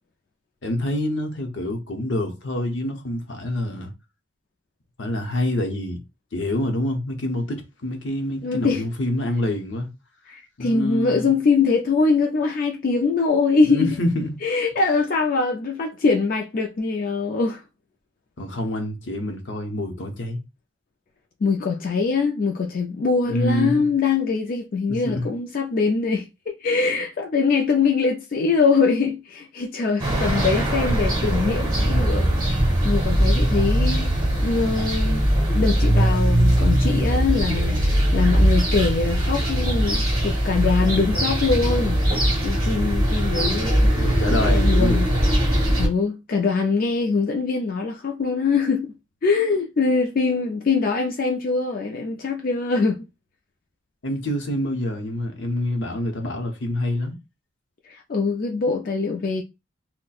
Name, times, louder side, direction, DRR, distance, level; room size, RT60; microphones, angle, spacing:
voice 1, 0.6-3.9 5.0-6.0 6.3-9.9 10.6-11.3 13.6-14.4 18.4-20.4 23.3-23.9 24.9-25.3 44.0-45.1 54.0-57.2, left 1 dB, 75° left, 0.7 m, -26 dB
voice 2, 8.4-8.8 10.3-13.9 14.4-17.6 21.4-26.3 26.6-32.3 32.6-34.1 34.4-42.0 42.4-43.9 44.5-45.1 45.5-48.9 49.2-53.0 57.9-59.4, left 4 dB, 50° left, 0.4 m, -23 dB
sound 1, 30.0-45.9, right 1 dB, 25° right, 1.1 m, -20 dB
4.0 x 2.1 x 2.3 m
head